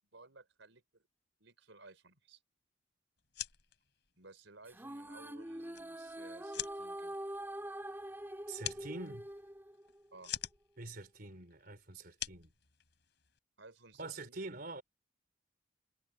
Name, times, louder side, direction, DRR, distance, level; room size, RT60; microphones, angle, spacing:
voice 1, 0.1-1.1 1.4-2.4 4.2-7.2 10.1-10.4 13.6-14.4, right 3 dB, 80° right, 4.4 m, -57 dB
sound 1, 3.2-13.4, left 11 dB, 60° left, 4.3 m, -47 dB
sound 2, 4.7-10.1, right 1 dB, 10° right, 3.3 m, -44 dB
voice 2, 8.5-9.3 10.8-12.5 14.0-14.8, right 2 dB, 50° right, 3.7 m, -45 dB
head